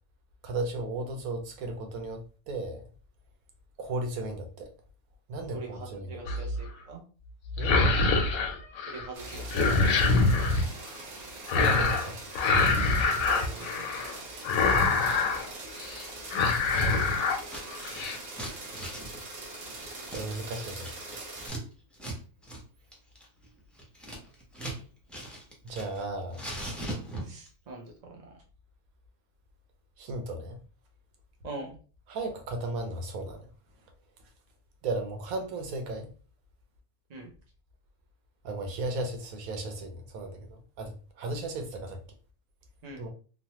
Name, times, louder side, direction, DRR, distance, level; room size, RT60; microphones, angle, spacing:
voice 1, 0.4-2.9 3.8-4.7 5.3-6.2 7.6-7.8 11.5-12.2 20.1-21.0 25.6-26.4 30.0-30.6 32.1-33.5 34.8-36.1 38.4-42.0 43.0-43.1, right 2 dB, 85° right, 4 dB, 1.1 m, -35 dB
voice 2, 5.5-7.0 8.9-10.2 13.3-14.0 27.2-28.2 31.4-31.8 37.1-37.3 42.8-43.0, right 3 dB, 40° right, 1 dB, 0.6 m, -43 dB
sound 1, 6.3-6.7 7.5-9.1 9.3-10.7 11.5-12.1 12.4-14.1 14.4-15.5 15.8-16.0 16.3-17.4 17.7-18.2, left 3 dB, 80° left, 1.0 m, -25 dB
sound 2, 9.1-21.5, right 2 dB, 60° right, 1.1 m, -42 dB
Scissors, 17.3-17.6 17.9-21.6 21.9-22.2 22.4-22.6 22.9-24.8 25.1-26.0 26.3-27.5, right 1 dB, ahead, 0.3 m, -39 dB
3.1 x 2.1 x 2.8 m, 0.38 s
omnidirectional pair, 1.4 m